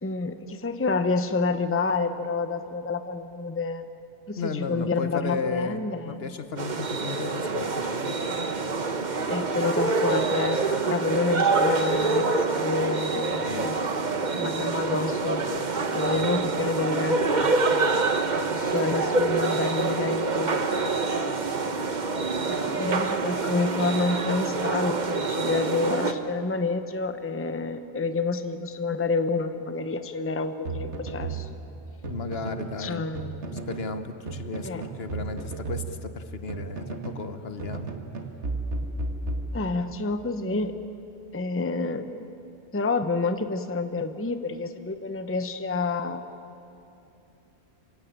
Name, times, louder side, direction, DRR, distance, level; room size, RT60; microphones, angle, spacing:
voice 1, 0.0-3.8 4.3-6.4 9.3-13.8 14.4-15.5 15.9-17.9 18.5-21.1 22.4-31.5 32.8-33.7 34.6-34.9 39.5-40.7 41.3-42.2 42.7-46.2, left 3 dB, 15° left, 9 dB, 0.8 m, -28 dB
voice 2, 4.4-8.1 13.5-13.7 16.1-16.2 32.0-33.1 33.5-37.9, left 4 dB, 60° left, 9 dB, 1.2 m, -34 dB
sound 1, 6.6-26.1, right 3 dB, 40° right, 1.2 m, -26 dB
sound 2, 30.6-32.8 33.1-33.9 34.3-37.3 37.6-40.0, right 3 dB, 80° right, 1.9 m, -34 dB
27.0 x 16.5 x 8.8 m, 2.8 s
omnidirectional pair, 1.2 m